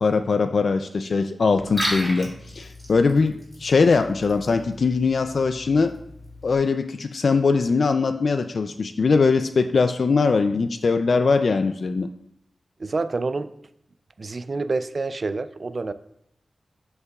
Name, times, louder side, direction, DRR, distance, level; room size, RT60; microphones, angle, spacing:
voice 1, 0.0-5.9 6.4-12.1, left 4 dB, 55° left, 9 dB, 0.3 m, -21 dB
Liquid, 1.6-6.6, equal, 5° left, 3.2 m, -35 dB
voice 2, 12.8-13.5 14.2-15.9, right 3 dB, 40° right, 12 dB, 0.3 m, -27 dB
12.5 x 5.4 x 2.3 m, 0.76 s
wide cardioid pair, 130°, 0 cm